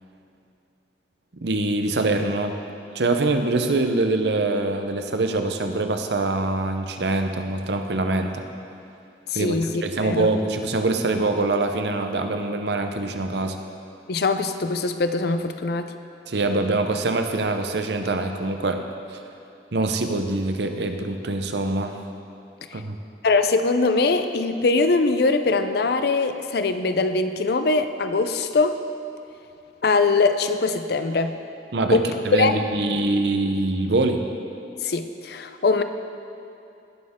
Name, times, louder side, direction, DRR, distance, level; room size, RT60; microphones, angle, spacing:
voice 1, 1.4-2.5 2.9-8.4 9.3-13.6 16.3-18.8 19.7-22.0 22.7-23.0 31.7-32.0 32.3-34.3, right 2 dB, 70° right, 6 dB, 0.7 m, -24 dB
voice 2, 9.3-10.3 14.1-15.9 23.2-28.8 29.8-31.4 31.9-32.6 34.8-35.8, left 3 dB, 60° left, 9 dB, 0.5 m, -22 dB
18.0 x 6.5 x 3.6 m, 2.7 s
head